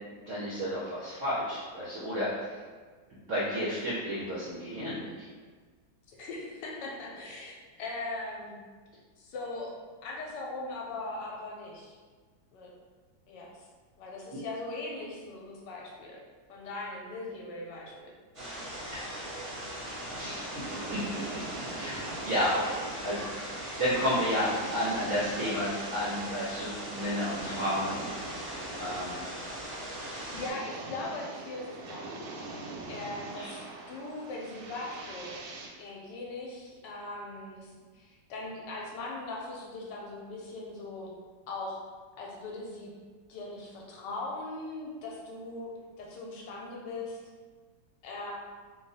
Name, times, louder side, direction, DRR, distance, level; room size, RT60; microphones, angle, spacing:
voice 1, 0.2-2.5 3.3-5.3 18.9-19.1 20.1-20.6 20.9-21.2 21.7-23.3 23.6-29.2 33.3-33.5, equal, 70° right, -8 dB, 0.7 m, -32 dB
voice 2, 6.1-7.5 7.8-8.5 9.2-9.7 10.0-12.0 12.5-12.7 13.3-13.7 14.0-16.2 16.5-18.1 30.3-32.2 32.9-33.6 33.9-35.4 35.8-41.1 41.5-41.8 42.2-42.9 43.3-45.7 46.0-47.2 48.0-48.3, left 2 dB, 75° left, -2 dB, 1.2 m, -40 dB
sound 1, 18.3-30.5, right 1 dB, 30° right, 0.6 m, -40 dB
sound 2, 19.8-35.7, right 2 dB, 90° right, 1.4 m, -43 dB
2.9 x 2.3 x 3.9 m, 1.5 s
omnidirectional pair, 2.0 m